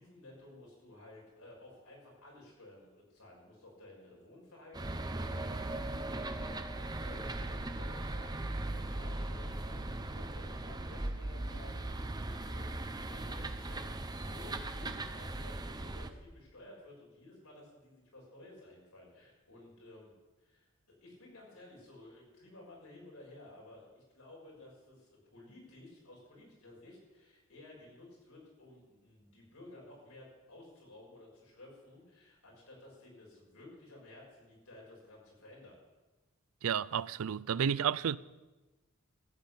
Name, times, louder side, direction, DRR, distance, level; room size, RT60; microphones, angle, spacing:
voice 1, 0.0-20.1 20.4-35.8, left 2 dB, 85° left, 6.4 m, -55 dB
sound 1, 4.7-16.1, right 2 dB, 20° right, 0.7 m, -38 dB
voice 2, 36.6-38.2, right 8 dB, 70° right, 0.4 m, -31 dB
14.0 x 7.9 x 8.5 m
head